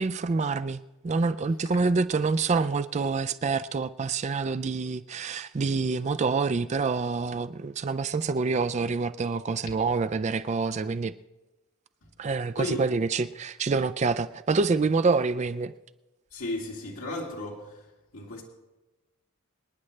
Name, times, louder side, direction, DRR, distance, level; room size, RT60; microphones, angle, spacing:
voice 1, 0.0-11.1 12.2-15.7, right 4 dB, 30° right, 0.4 m, -27 dB
voice 2, 16.3-17.8 18.1-18.4, left 2 dB, 85° left, 2.3 m, -34 dB
26.5 x 9.8 x 3.3 m
head